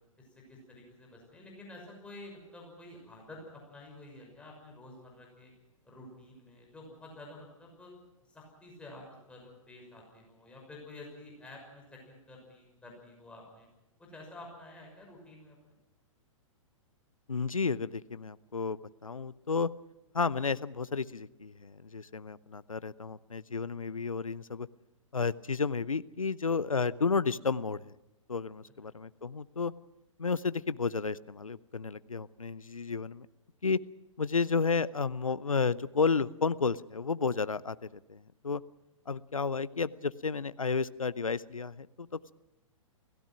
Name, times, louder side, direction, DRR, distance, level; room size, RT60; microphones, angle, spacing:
voice 1, 0.3-5.5 5.8-7.9 8.3-13.7 14.0-15.7, left 2 dB, 5° left, -1 dB, 6.1 m, -50 dB
voice 2, 17.3-19.7 20.1-24.7 25.1-27.9 28.3-29.7 30.2-33.3 33.6-33.8 34.2-38.6 39.1-42.3, left 5 dB, 80° left, 17 dB, 0.8 m, -32 dB
29.5 x 16.0 x 6.1 m, 0.96 s
figure-of-eight pair, 110°, 17 cm